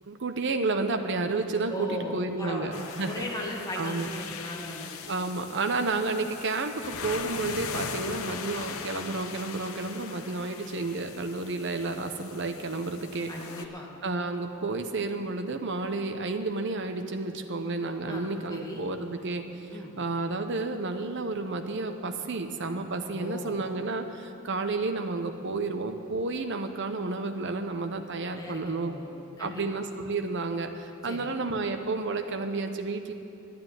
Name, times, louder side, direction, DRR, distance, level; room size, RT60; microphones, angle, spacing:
voice 1, 0.0-3.2 3.8-4.1 5.1-13.3 14.0-19.5 20.0-28.9 29.4-33.1, right 3 dB, 60° right, 6 dB, 0.8 m, -31 dB
voice 2, 1.7-5.0 13.2-13.9 18.1-18.8 19.7-20.0 23.1-23.6 28.4-29.6 31.0-31.3, left 1 dB, 15° left, -2 dB, 2.0 m, -38 dB
sound 1, 2.7-13.6, left 5 dB, 80° left, 0.8 m, -40 dB
11.5 x 9.5 x 9.1 m, 2.7 s
head